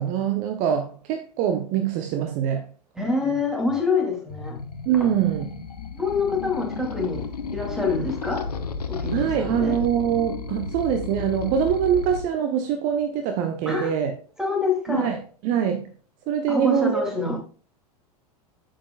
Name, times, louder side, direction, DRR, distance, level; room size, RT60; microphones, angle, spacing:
voice 1, 0.0-2.7 4.9-5.6 9.1-14.1 14.9-15.9 16.3-17.0 17.3-17.4, right 9 dB, 40° right, 0.8 m, -24 dB
voice 2, 3.0-4.6 5.9-7.3 7.5-8.4 8.9-9.7 13.7-13.9 14.4-15.1 16.5-17.4, left 4 dB, 5° right, 2.6 m, -26 dB
sound 1, 4.3-12.2, left 5 dB, 75° left, 0.9 m, -33 dB
8.4 x 7.6 x 2.4 m
figure-of-eight pair, 90°, 20 cm